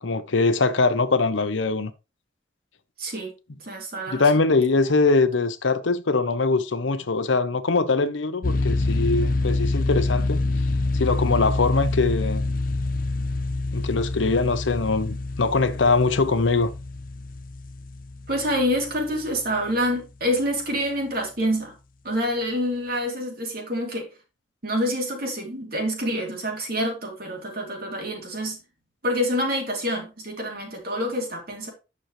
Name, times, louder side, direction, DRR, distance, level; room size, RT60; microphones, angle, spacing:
voice 1, 0.0-1.9 4.1-10.5 10.9-12.5 13.7-16.7, left 3 dB, 80° left, 0.8 m, -22 dB
voice 2, 3.0-3.3 3.6-4.3 18.3-21.7 22.0-24.1 24.6-28.6 29.0-31.7, equal, 50° right, 2.7 m, -27 dB
sound 1, 8.4-19.3, left 2 dB, 50° left, 0.7 m, -26 dB
9.1 x 6.4 x 3.2 m
head